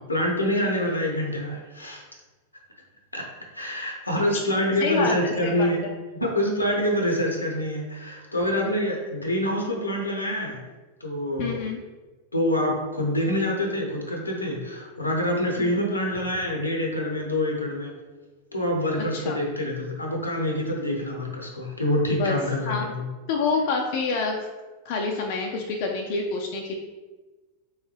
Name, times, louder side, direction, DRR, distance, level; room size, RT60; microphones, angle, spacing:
voice 1, 0.1-2.0 3.1-3.3 3.5-5.8 6.1-10.6 11.0-11.6 12.3-17.9 18.5-23.1, left 1 dB, 85° left, 0 dB, 0.7 m, -26 dB
voice 2, 4.8-5.7 11.4-11.8 15.6-15.7 19.1-19.4 22.1-22.4 22.6-22.9 23.3-24.5 24.9-26.7, left 4 dB, 50° left, 2 dB, 0.4 m, -27 dB
3.4 x 3.1 x 3.1 m, 1.2 s
figure-of-eight pair, 90°, 0 cm